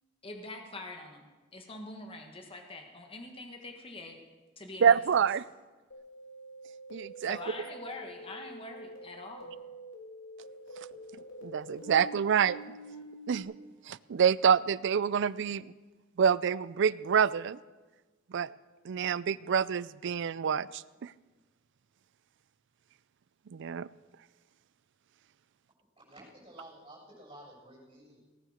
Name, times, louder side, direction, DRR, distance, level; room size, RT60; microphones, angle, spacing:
voice 1, 0.2-1.2 1.5-4.2 4.6-5.0 7.2-9.5, left 2 dB, 25° left, 3 dB, 1.5 m, -44 dB
voice 2, 4.8-5.4 6.9-7.4 11.4-12.6 13.3-13.5 13.9-15.7 16.2-17.6 18.3-18.5 18.9-21.1 23.5-23.9, right 7 dB, 60° right, 19 dB, 0.4 m, -27 dB
sound 1, 5.9-13.4, right 1 dB, 70° left, 3.3 m, -46 dB
voice 3, 26.1-28.2, right 1 dB, 25° right, -5 dB, 6.7 m, -51 dB
18.5 x 9.5 x 6.5 m, 1.2 s
head